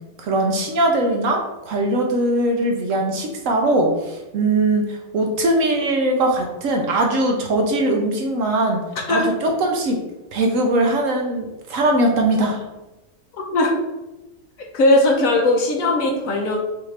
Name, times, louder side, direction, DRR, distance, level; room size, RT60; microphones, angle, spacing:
voice 1, 0.2-8.8 9.1-10.0 10.3-12.6, right 1 dB, 65° right, 2 dB, 0.9 m, -20 dB
voice 2, 14.7-16.6, left 2 dB, 65° left, 1 dB, 1.2 m, -18 dB
5.6 x 2.6 x 3.2 m, 1.0 s
omnidirectional pair, 1.6 m